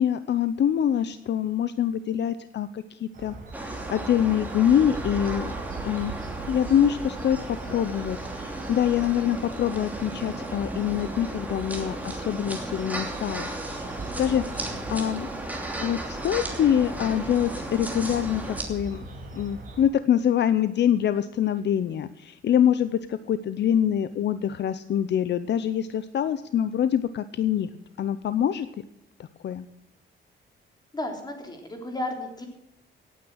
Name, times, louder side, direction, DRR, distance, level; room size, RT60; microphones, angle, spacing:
voice 1, 0.0-5.6 5.8-6.2 6.5-15.3 15.8-18.4 18.7-19.0 19.3-27.7 28.0-28.7 29.2-29.7, left 9 dB, 60° left, 13 dB, 0.7 m, -25 dB
sound 1, 3.1-19.9, right 2 dB, 45° right, 5.2 m, -41 dB
sound 2, 3.5-18.6, right 1 dB, 10° right, 2.8 m, -35 dB
sound 3, 4.8-10.0, right 6 dB, 65° right, 6.1 m, -42 dB
voice 2, 30.9-32.5, left 1 dB, 20° left, 3 dB, 3.4 m, -33 dB
17.5 x 9.3 x 6.4 m, 0.88 s
wide cardioid pair, 150°, 20 cm